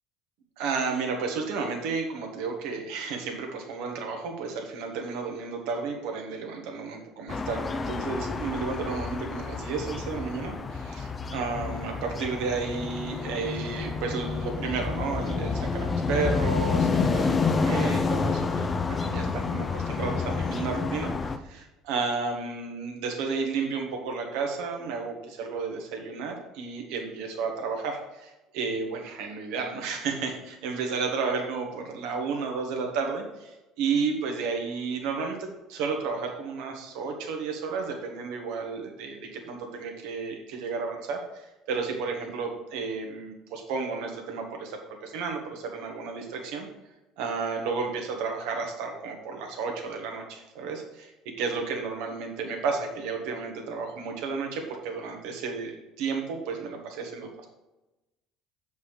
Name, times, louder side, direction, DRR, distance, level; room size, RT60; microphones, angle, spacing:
voice 1, 0.6-46.7 47.2-51.1 51.4-57.5, right 4 dB, 70° right, 2 dB, 1.6 m, -32 dB
sound 1, 7.3-21.4, left 4 dB, 30° left, 0.7 m, -29 dB
7.3 x 5.2 x 5.0 m, 1.0 s
hypercardioid pair, 65°, 0 cm